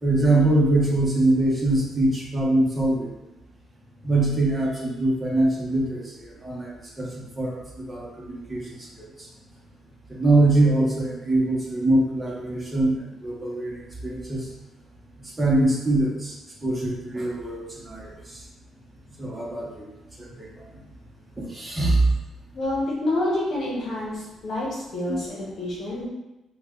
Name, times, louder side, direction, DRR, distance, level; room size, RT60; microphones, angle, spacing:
voice 1, 0.0-3.1 4.0-7.5 7.9-8.6 9.0-9.3 10.1-12.9 13.2-14.5 15.2-16.3 16.6-18.4 19.2-19.9 20.2-20.5 21.4-22.0 25.1-25.2, right 2 dB, 15° right, -4 dB, 1.0 m, -23 dB
voice 2, 22.5-26.1, left 1 dB, 55° left, -5 dB, 1.1 m, -28 dB
3.2 x 2.4 x 3.7 m, 1.0 s
cardioid pair, 90°, 0 cm